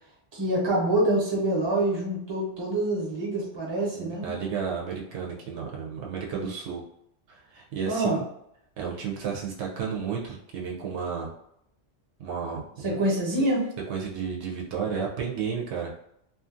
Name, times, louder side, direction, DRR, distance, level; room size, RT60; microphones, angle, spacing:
voice 1, 0.3-4.3 6.1-6.5 7.8-8.2 12.8-13.6, right 1 dB, 25° right, -4 dB, 0.8 m, -26 dB
voice 2, 3.9-6.8 7.3-8.2 8.8-11.3 12.2-13.0 13.9-15.9, right 6 dB, 75° right, -2 dB, 0.8 m, -32 dB
2.6 x 2.4 x 2.5 m, 0.75 s
omnidirectional pair, 1.2 m